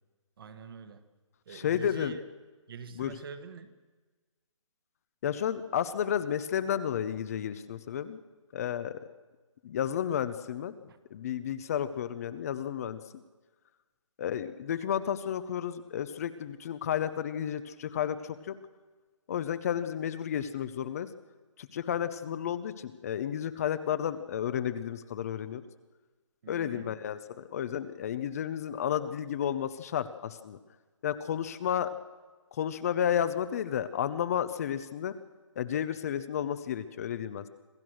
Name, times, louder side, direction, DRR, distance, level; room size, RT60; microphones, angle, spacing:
voice 1, 0.4-1.1 1.4-2.2 2.7-3.8 5.2-5.3 10.9-11.0 26.4-27.0 31.8-31.9, right 6 dB, 45° right, 10 dB, 1.6 m, -45 dB
voice 2, 1.5-2.2 3.0-3.2 5.2-8.2 8.5-9.0 9.6-10.7 11.1-13.0 14.2-18.5 19.3-21.1 21.6-25.6 26.5-30.6 31.0-31.9 32.5-35.1 35.6-37.5, left 9 dB, 30° left, 12 dB, 0.7 m, -32 dB
27.0 x 15.5 x 6.4 m, 1.3 s
hypercardioid pair, 155°, 16 cm